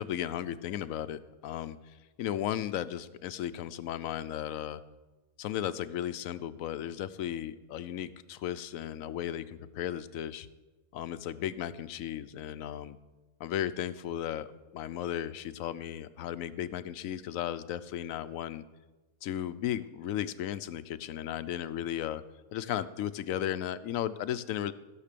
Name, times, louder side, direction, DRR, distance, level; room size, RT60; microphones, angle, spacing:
voice 1, 0.0-1.8 2.2-4.8 5.4-10.5 10.9-13.0 13.4-18.6 19.2-22.2 22.5-24.7, left 11 dB, 85° left, 15 dB, 1.0 m, -35 dB
15.0 x 6.7 x 6.7 m, 1.2 s
omnidirectional pair, 1.4 m